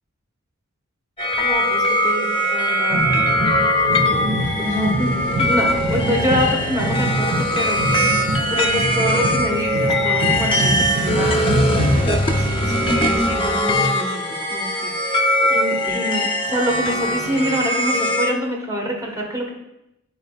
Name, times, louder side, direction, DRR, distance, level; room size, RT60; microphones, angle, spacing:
sound 1, 1.2-18.3, left 1 dB, 25° left, 0.7 m, -21 dB
voice 1, 1.4-3.0 3.4-3.7 4.2-19.5, equal, 15° right, 0 dB, 1.3 m, -26 dB
sound 2, 2.9-12.2, right 1 dB, 60° right, 1.7 m, -25 dB
11.5 x 4.8 x 2.4 m, 0.86 s
head